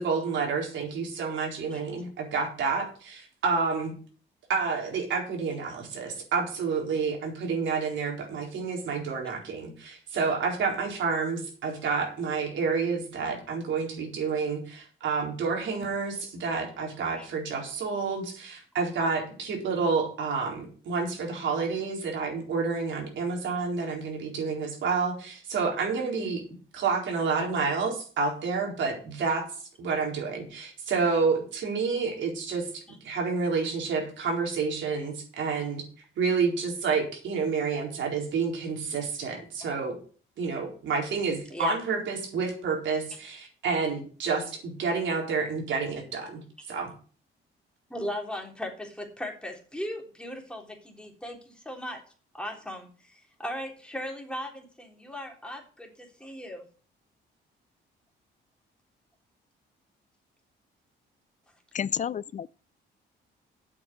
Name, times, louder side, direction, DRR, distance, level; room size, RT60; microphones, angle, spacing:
voice 1, 0.0-3.9 4.5-26.4 26.7-29.4 29.8-35.8 36.2-39.9 40.4-46.4 46.7-46.9, right 5 dB, 70° right, 4.2 m, -29 dB
voice 2, 47.9-52.0 52.3-56.6, equal, 5° left, 3.7 m, -38 dB
voice 3, 61.7-62.6, left 8 dB, 40° left, 0.5 m, -30 dB
8.3 x 7.0 x 7.9 m
cardioid pair, 90°, 20 cm